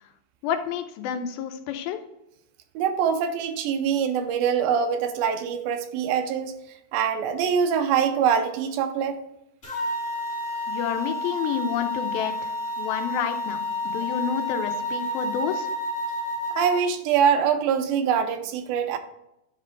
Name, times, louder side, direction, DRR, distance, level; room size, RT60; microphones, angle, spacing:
voice 1, 0.4-2.0 10.7-12.5 12.8-13.6 13.8-15.7, left 8 dB, 90° left, 6 dB, 2.5 m, -29 dB
voice 2, 2.8-6.5 6.9-9.2 16.6-19.0, right 7 dB, 80° right, 8 dB, 2.5 m, -24 dB
sound 1, 9.6-16.8, left 1 dB, 25° left, 2.3 m, -30 dB
10.0 x 4.5 x 3.6 m, 0.86 s
omnidirectional pair, 4.2 m